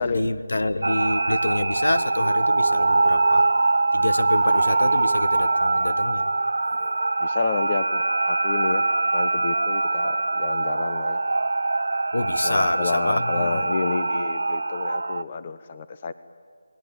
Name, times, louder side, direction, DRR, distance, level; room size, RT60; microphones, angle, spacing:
voice 1, 0.0-3.5 3.9-6.3 12.1-13.6, left 2 dB, 80° left, 12 dB, 1.6 m, -27 dB
sound 1, 0.8-15.2, right 3 dB, 75° right, 0.8 m, -23 dB
voice 2, 7.2-8.9 9.1-11.2 12.4-16.1, left 5 dB, 30° left, 12 dB, 0.9 m, -30 dB
29.0 x 20.0 x 8.9 m, 2.2 s
figure-of-eight pair, 165°, 0 cm